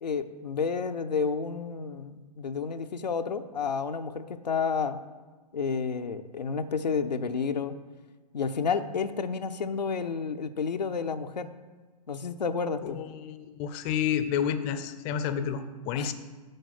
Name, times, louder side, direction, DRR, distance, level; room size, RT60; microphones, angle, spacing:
voice 1, 0.0-5.0 5.5-7.7 8.3-11.5 12.1-13.0 15.9-16.1, left 5 dB, 90° left, 8 dB, 0.5 m, -30 dB
voice 2, 12.8-16.1, left 8 dB, 30° left, 10 dB, 0.4 m, -30 dB
6.4 x 4.1 x 6.5 m, 1.3 s
figure-of-eight pair, 115°, 21 cm